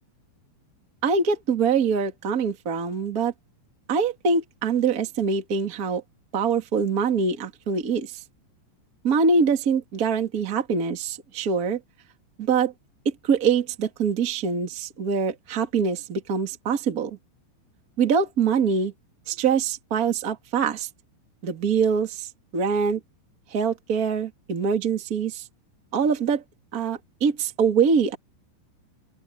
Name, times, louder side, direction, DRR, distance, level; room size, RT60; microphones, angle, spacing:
voice 1, 1.0-3.3 3.9-6.0 6.3-8.1 9.0-11.8 12.4-12.7 13.3-17.1 18.0-18.9 19.3-20.9 21.4-22.3 22.5-23.0 23.5-25.4 25.9-26.4 26.7-28.2, right 5 dB, 45° right, 1.1 m, -24 dB
open air
omnidirectional pair, 5.5 m